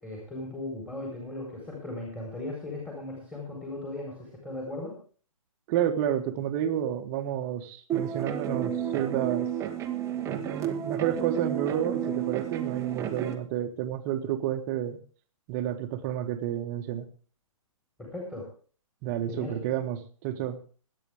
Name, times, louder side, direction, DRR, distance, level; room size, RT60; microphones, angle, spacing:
voice 1, 0.0-4.9 18.0-18.4 19.3-19.6, left 2 dB, 5° left, -2 dB, 4.3 m, -37 dB
voice 2, 5.7-9.5 10.3-15.0 15.5-17.0 19.0-20.6, right 10 dB, 30° right, 7 dB, 1.6 m, -30 dB
sound 1, 7.9-13.4, right 9 dB, 15° right, 1.4 m, -31 dB
22.5 x 9.2 x 3.5 m, 0.42 s
hypercardioid pair, 135°, 18 cm